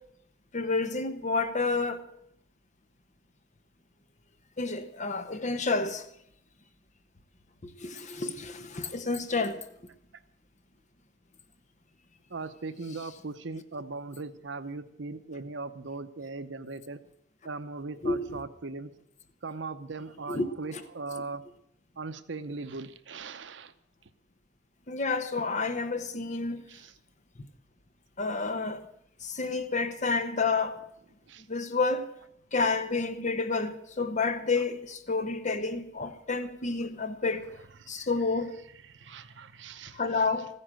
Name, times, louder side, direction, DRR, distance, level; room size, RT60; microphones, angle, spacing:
voice 1, 0.5-2.1 4.6-6.1 7.6-9.6 18.0-18.4 20.3-20.5 24.9-26.6 28.2-28.9 29.2-30.8 31.5-32.1 32.5-37.5 37.9-38.5 39.9-40.5, left 3 dB, 40° left, 1.1 m, -29 dB
voice 2, 12.3-17.0 17.4-18.9 19.4-21.4 22.0-23.7 26.7-26.9 31.3-31.5 37.8-38.1 38.8-40.2, right 3 dB, 75° right, 0.8 m, -39 dB
14.5 x 9.9 x 7.5 m
head